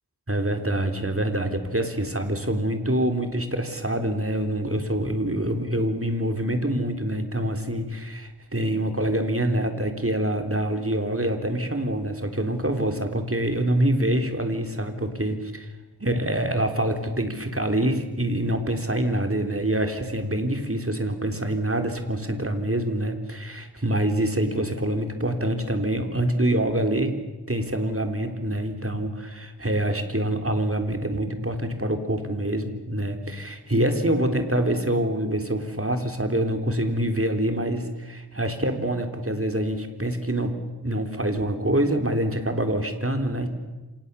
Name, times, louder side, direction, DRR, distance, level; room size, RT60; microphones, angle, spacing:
voice 1, 0.3-15.7 16.0-27.1 27.5-40.6 40.8-43.5, right 1 dB, 35° right, 6 dB, 3.7 m, -25 dB
28.5 x 26.5 x 7.0 m, 1.1 s
wide cardioid pair, 40°, 40 cm